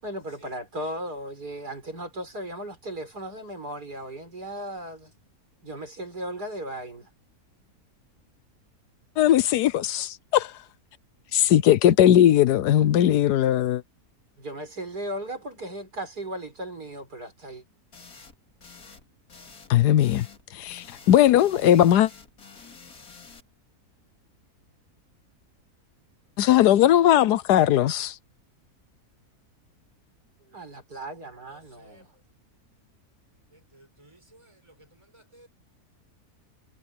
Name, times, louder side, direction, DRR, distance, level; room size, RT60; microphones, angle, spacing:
voice 1, 0.0-5.1 5.6-7.1 14.4-17.6 30.5-32.1, right 1 dB, 75° right, 6.6 m, -36 dB
voice 2, 9.2-10.5 11.3-13.8 19.7-20.3 20.5-22.1 26.4-28.1, left 11 dB, 85° left, 1.3 m, -19 dB
sound 1, 17.9-18.3 18.6-19.0 19.3-19.7 20.0-20.4 20.7-23.4, left 5 dB, 65° left, 2.9 m, -48 dB
voice 3, 31.5-32.1 33.5-35.5, right 1 dB, 20° right, 5.6 m, -56 dB
omnidirectional pair, 1.7 m